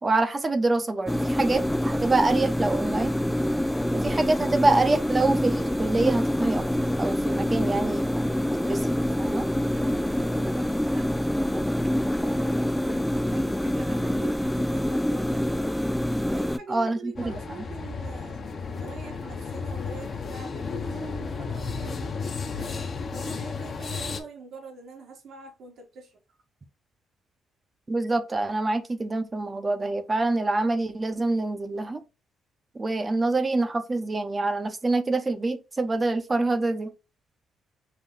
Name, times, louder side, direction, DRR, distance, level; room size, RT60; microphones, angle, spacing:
voice 1, 0.0-3.1 3.9-6.6 7.0-9.5 16.7-17.3 27.9-32.0 32.7-36.9, right 2 dB, 25° right, 0.8 m, -26 dB
sound 1, 1.1-16.6, equal, 5° left, 0.3 m, -26 dB
voice 2, 9.9-11.7 12.1-15.7 16.2-22.1 22.6-26.2, right 4 dB, 65° right, 1.4 m, -44 dB
sound 2, 17.2-24.2, left 4 dB, 45° left, 0.9 m, -33 dB
5.7 x 2.2 x 3.7 m
cardioid pair, 90°, 0 cm